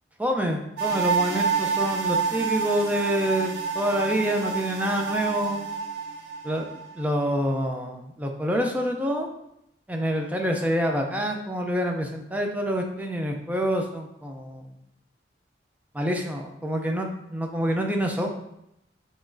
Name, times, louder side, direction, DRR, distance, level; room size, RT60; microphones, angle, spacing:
voice 1, 0.2-5.7 6.4-9.3 9.9-14.7 15.9-18.3, equal, 10° right, 2 dB, 0.4 m, -27 dB
sound 1, 0.8-7.1 7.4-7.5, right 5 dB, 75° right, 0.9 m, -28 dB
5.9 x 3.0 x 2.6 m, 0.80 s
head